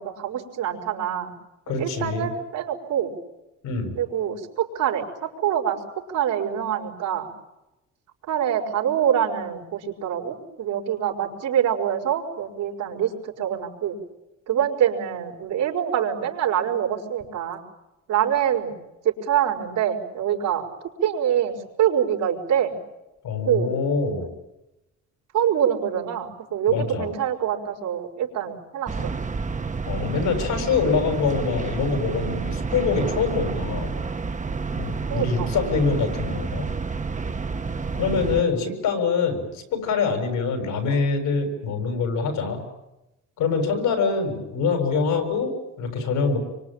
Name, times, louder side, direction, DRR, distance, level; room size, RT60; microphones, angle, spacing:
voice 1, 0.0-1.3 1.8-3.1 4.0-5.8 6.1-7.3 8.3-13.9 14.5-17.6 18.1-18.7 19.0-20.7 21.0-22.8 23.4-23.7 25.3-29.1 35.1-35.5, right 9 dB, 90° right, -1 dB, 5.2 m, -25 dB
voice 2, 1.7-2.3 3.6-4.0 23.2-24.3 26.7-27.1 29.9-33.9 34.8-36.7 37.9-42.6 43.4-46.4, left 5 dB, 85° left, 5 dB, 6.9 m, -24 dB
sound 1, 28.9-38.4, right 4 dB, 25° right, 1.0 m, -29 dB
26.0 x 25.0 x 8.9 m, 0.94 s
cardioid pair, 90°, 30 cm